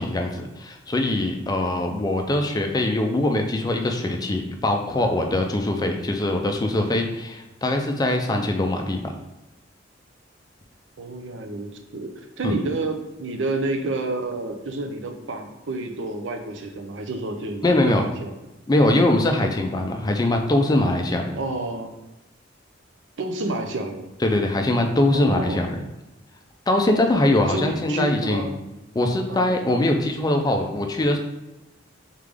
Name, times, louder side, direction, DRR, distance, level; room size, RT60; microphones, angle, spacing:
voice 1, 0.0-9.1 12.4-12.5 17.6-18.1 18.7-21.4 24.2-25.8 26.7-28.5 28.9-31.2, left 1 dB, 20° left, 3 dB, 0.4 m, -22 dB
voice 2, 11.0-12.1 12.4-18.4 21.4-21.9 23.2-24.1 25.1-25.7 27.5-28.6 29.3-29.5, right 2 dB, 70° right, 5 dB, 0.5 m, -29 dB
3.7 x 3.6 x 3.4 m, 0.99 s
head